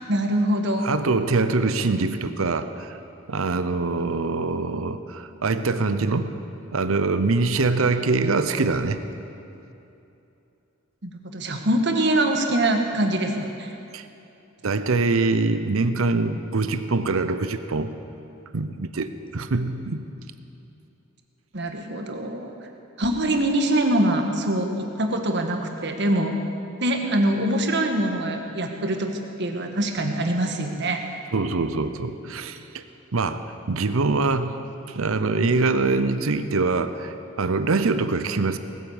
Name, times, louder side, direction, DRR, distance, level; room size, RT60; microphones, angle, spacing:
voice 1, 0.1-0.9 1.8-2.2 11.0-13.7 21.5-22.5 23.0-26.3 26.8-29.1 29.4-31.0, right 1 dB, 55° right, 4 dB, 1.5 m, -24 dB
voice 2, 0.8-3.0 3.3-6.3 6.7-9.0 13.9-14.1 14.6-17.9 18.5-20.1 31.3-32.8 33.1-34.6 34.9-38.6, right 3 dB, 80° right, 10 dB, 0.8 m, -24 dB
19.0 x 9.5 x 7.2 m, 2.8 s
head